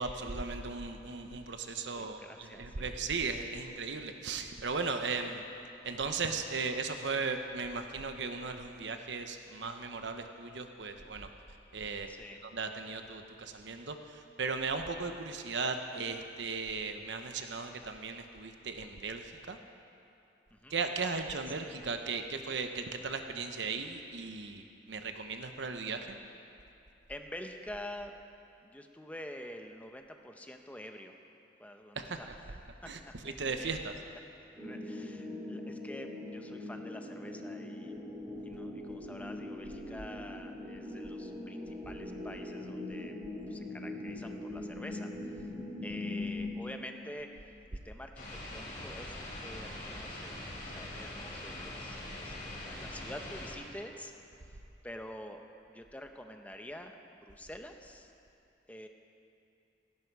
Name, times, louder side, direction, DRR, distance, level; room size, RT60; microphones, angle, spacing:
voice 1, 0.0-5.4 5.8-11.3 11.7-12.1 12.4-19.6 20.7-26.2 32.0-32.4 32.9-33.9, right 4 dB, 80° right, 6 dB, 0.9 m, -37 dB
voice 2, 2.0-2.9 12.1-12.4 20.5-20.7 27.1-28.1 28.6-31.1 31.6-32.3 32.8-33.8 34.6-38.0 38.4-43.1 43.5-45.5 45.8-48.2 48.5-54.1 54.8-55.4 55.7-56.9 57.2-58.1 58.7-58.9, left 1 dB, 10° left, 4 dB, 0.8 m, -47 dB
sound 1, 34.5-46.5, left 2 dB, 15° right, 4.2 m, -41 dB
sound 2, 48.1-53.5, left 1 dB, 50° left, 4.9 m, -43 dB
17.0 x 16.5 x 4.7 m, 2.7 s
head